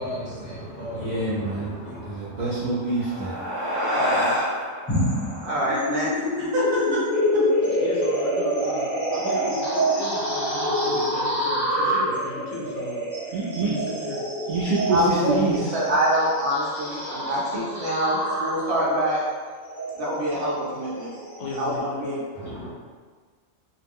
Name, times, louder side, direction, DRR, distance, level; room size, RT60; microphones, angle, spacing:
voice 1, 0.0-2.7 22.3-22.7, equal, 35° left, -10 dB, 1.0 m, -36 dB
voice 2, 0.9-1.8 2.1-3.3 13.3-13.7 14.5-15.8, right 3 dB, 80° right, -9 dB, 0.4 m, -26 dB
sound 1, 2.7-7.4, equal, 20° right, 0.6 m, -29 dB
voice 3, 3.9-4.4 5.4-6.1 6.4-7.0 7.3-7.4 14.9-19.2 20.0-21.1 21.5-22.2, equal, 60° right, -6 dB, 0.8 m, -25 dB
sound 2, 4.9-21.8, equal, 20° left, 1.2 m, -27 dB
voice 4, 7.6-14.3 21.4-21.9, left 2 dB, 70° left, -3 dB, 0.9 m, -37 dB
2.4 x 2.0 x 3.4 m, 1.5 s
omnidirectional pair, 1.4 m